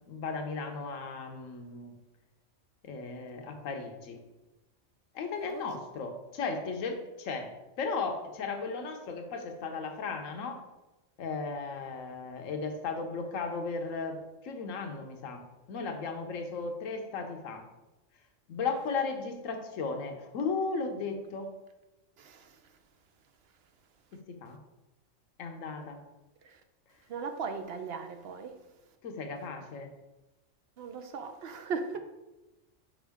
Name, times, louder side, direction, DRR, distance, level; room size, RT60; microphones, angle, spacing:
voice 1, 0.1-2.0 2.8-4.2 5.1-10.6 11.2-17.7 18.5-21.5 24.1-24.6 25.4-26.0 29.0-29.9, left 4 dB, 90° left, 4 dB, 1.1 m, -36 dB
voice 2, 27.1-28.5 30.8-32.0, right 5 dB, 60° right, 7 dB, 0.7 m, -37 dB
6.2 x 5.1 x 3.5 m, 1.0 s
omnidirectional pair, 1.3 m